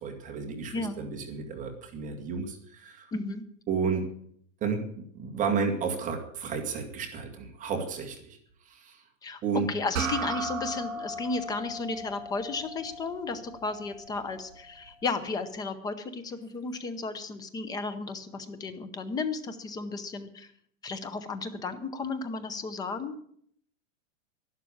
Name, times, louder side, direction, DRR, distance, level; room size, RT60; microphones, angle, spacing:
voice 1, 0.0-3.1 3.7-4.1 4.6-8.4 8.7-9.0 9.4-9.7, right 5 dB, 20° right, 2 dB, 2.1 m, -32 dB
voice 2, 0.7-1.0 3.1-3.4 9.2-9.4 9.7-20.5 20.8-23.2, left 3 dB, 10° left, 12 dB, 0.6 m, -34 dB
sound 1, 9.9-14.7, right 3 dB, 75° right, 4.7 m, -37 dB
12.0 x 11.5 x 8.5 m, 0.64 s
supercardioid pair, 165°, 40 cm